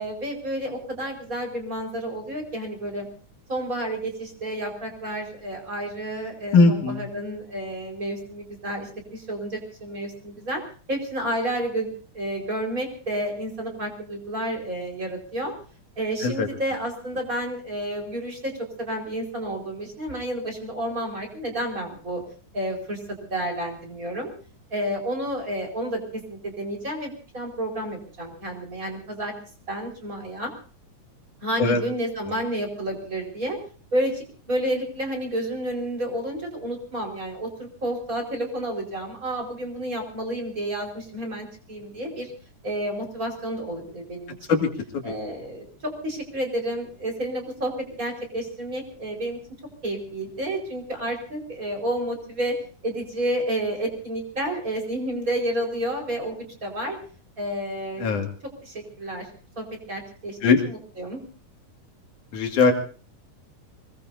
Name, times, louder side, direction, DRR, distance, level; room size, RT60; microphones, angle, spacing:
voice 1, 0.0-3.1 3.5-10.6 10.9-15.5 16.0-22.2 22.5-23.0 23.3-24.3 24.7-29.3 29.7-30.5 31.4-33.6 33.9-42.3 42.6-44.6 45.0-49.4 49.8-52.6 52.8-57.0 57.4-58.1 58.6-59.3 59.6-60.4 60.6-61.2, right 1 dB, 25° right, 1 dB, 5.0 m, -30 dB
voice 2, 6.5-7.0 16.2-16.5 31.6-31.8 44.5-44.7 44.9-45.0 58.0-58.3 60.4-60.6 62.3-62.7, left 4 dB, 65° left, 4 dB, 3.6 m, -19 dB
25.5 x 20.5 x 2.7 m, 0.41 s
omnidirectional pair, 3.8 m